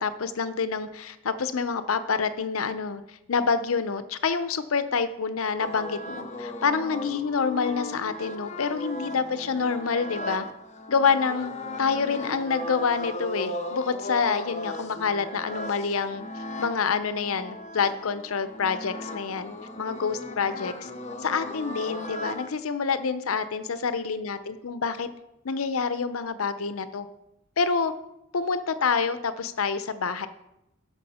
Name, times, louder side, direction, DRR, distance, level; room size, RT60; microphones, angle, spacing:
voice 1, 0.0-10.5 10.9-11.5 11.8-16.2 16.6-20.9 21.2-25.1 25.4-27.1 27.6-27.9 28.3-30.3, left 5 dB, 85° left, 12 dB, 0.6 m, -27 dB
sound 1, 5.6-22.5, left 2 dB, 35° left, 0.8 m, -37 dB
12.0 x 6.0 x 4.3 m, 0.87 s
head